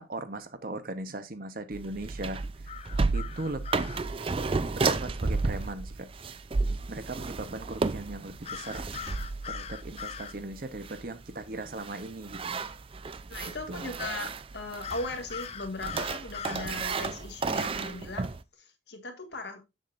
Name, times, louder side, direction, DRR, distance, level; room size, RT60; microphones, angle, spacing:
voice 1, 0.0-2.7 3.1-4.1 4.7-6.1 6.9-8.9 9.5-12.6 13.7-13.9, right 2 dB, 50° right, 0.9 m, -38 dB
sound 1, 1.7-18.4, right 3 dB, 30° right, 0.4 m, -33 dB
sound 2, 2.7-4.0 8.4-10.3 14.8-16.7, left 8 dB, 35° left, 0.4 m, -41 dB
voice 2, 13.3-19.6, left 2 dB, 65° left, 1.7 m, -38 dB
7.3 x 7.3 x 2.5 m
head